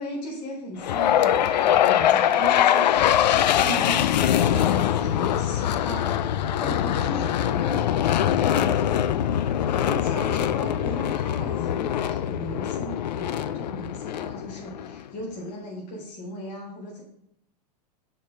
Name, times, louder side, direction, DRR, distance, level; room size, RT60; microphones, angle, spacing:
voice 1, 0.0-6.1 6.6-8.8 9.7-17.0, equal, 50° left, -5 dB, 3.7 m, -37 dB
sound 1, 0.8-15.0, left 10 dB, 85° left, 0.5 m, -23 dB
7.4 x 5.3 x 5.3 m, 0.77 s
hypercardioid pair, 125°, 21 cm